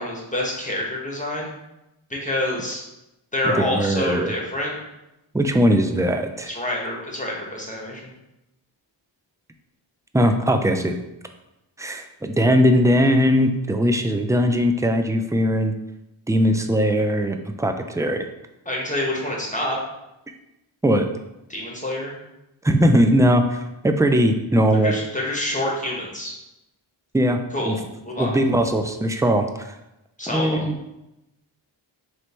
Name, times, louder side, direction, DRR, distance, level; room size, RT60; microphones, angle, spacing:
voice 1, 0.0-1.5 2.1-2.8 3.3-4.7 6.5-8.1 18.6-19.8 21.5-22.1 24.8-26.4 27.5-27.7 28.0-28.4 30.2-30.7, left 1 dB, 15° left, -2 dB, 1.3 m, -27 dB
voice 2, 3.4-4.3 5.3-6.5 10.1-11.0 11.8-15.7 16.3-18.2 20.8-21.1 22.6-24.9 27.1-27.4 27.7-27.8 28.2-29.7 30.3-30.8, equal, 10° right, 6 dB, 0.3 m, -20 dB
3.1 x 3.1 x 4.3 m, 0.92 s
cardioid pair, 45°, 48 cm